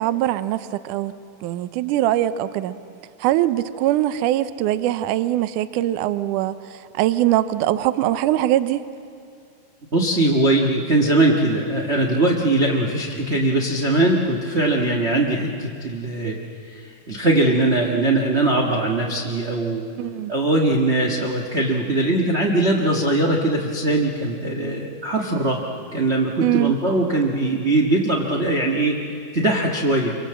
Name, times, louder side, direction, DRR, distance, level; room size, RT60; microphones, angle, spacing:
voice 1, 0.0-2.7 3.2-8.9 20.0-20.3 26.4-26.8, right 13 dB, 75° right, 13 dB, 2.1 m, -22 dB
voice 2, 9.9-16.3 16.7-19.8 20.3-25.6 25.9-29.0 29.3-30.1, right 2 dB, 35° right, -1 dB, 1.1 m, -21 dB
26.0 x 24.5 x 7.7 m, 2.4 s
omnidirectional pair, 3.8 m